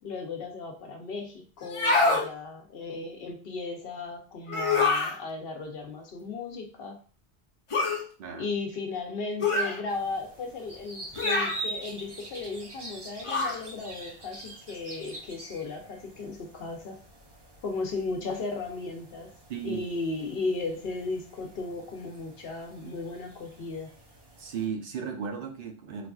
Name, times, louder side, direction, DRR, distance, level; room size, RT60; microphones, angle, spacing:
voice 1, 0.0-7.0 8.3-17.0 17.6-19.3 19.6-23.9, left 3 dB, 70° left, 4 dB, 0.8 m, -35 dB
sound 1, 1.6-2.3 4.5-5.2 7.7-8.0 9.4-9.8 11.2-11.6 13.2-13.6, left 3 dB, 40° left, 0.5 m, -25 dB
sound 2, 9.9-24.7, right 1 dB, 30° right, 0.6 m, -44 dB
voice 2, 19.5-19.8 24.4-26.1, right 7 dB, 65° right, 4 dB, 0.7 m, -35 dB
4.0 x 2.4 x 2.3 m, 0.41 s
omnidirectional pair, 1.0 m